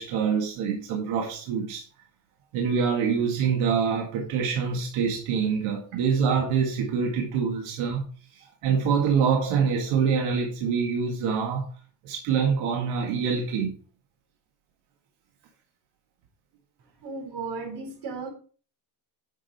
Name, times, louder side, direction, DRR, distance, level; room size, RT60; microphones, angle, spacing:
voice 1, 0.0-1.8 2.5-8.0 8.3-11.6 12.0-13.7, right 6 dB, 85° right, 2.1 m, -25 dB
voice 2, 17.0-18.3, right 4 dB, 55° right, 4.2 m, -35 dB
10.0 x 6.7 x 4.3 m
cardioid pair, 120°, 47 cm